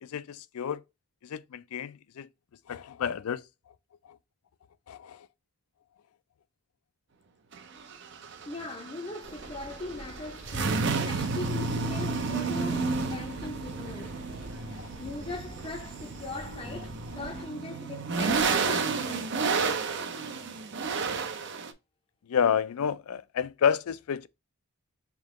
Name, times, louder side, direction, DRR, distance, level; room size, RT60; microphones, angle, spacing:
voice 1, 0.0-0.8 1.2-2.3 2.7-3.5 4.9-5.3 14.6-14.9 22.3-24.3, left 7 dB, 85° left, 0.4 m, -30 dB
sound 1, 7.5-21.7, right 4 dB, 55° right, 0.5 m, -31 dB
voice 2, 8.5-14.2 15.0-19.3, left 2 dB, 25° left, 0.5 m, -40 dB
sound 2, 9.2-17.5, right 1 dB, 70° right, 1.3 m, -46 dB
3.6 x 2.9 x 3.5 m
head